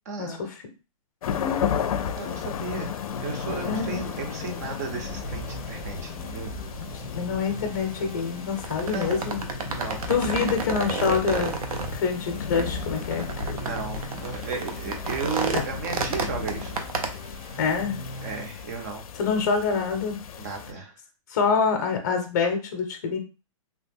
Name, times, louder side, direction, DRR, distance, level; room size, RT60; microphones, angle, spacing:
voice 1, 0.1-0.5 2.2-6.5 8.8-9.3 9.7-10.5 13.6-16.8 18.2-19.1 20.4-21.0, right 4 dB, 30° right, 3 dB, 0.5 m, -35 dB
sound 1, 1.2-20.7, left 7 dB, 85° left, 0.4 m, -34 dB
sound 2, 3.1-18.4, right 2 dB, 70° right, 1.4 m, -44 dB
voice 2, 3.6-4.0 7.1-9.4 10.1-11.5 11.9-13.3 15.5-15.6 17.6-18.0 19.2-20.2 21.3-23.2, left 5 dB, 30° left, 5 dB, 0.6 m, -26 dB
sound 3, 4.9-17.1, right 4 dB, 90° right, 0.7 m, -33 dB
2.8 x 2.1 x 3.4 m, 0.32 s
hypercardioid pair, 180°, 18 cm